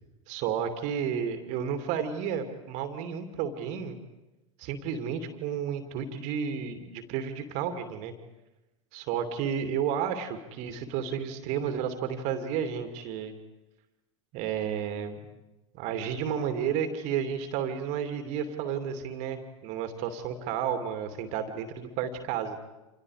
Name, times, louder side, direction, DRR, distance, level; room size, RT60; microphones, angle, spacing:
voice 1, 0.3-4.0 4.6-8.1 8.9-13.3 14.3-15.2 15.7-22.6, right 8 dB, 45° right, 7 dB, 2.8 m, -32 dB
29.5 x 27.5 x 5.1 m, 1.0 s
figure-of-eight pair, 90°, 17 cm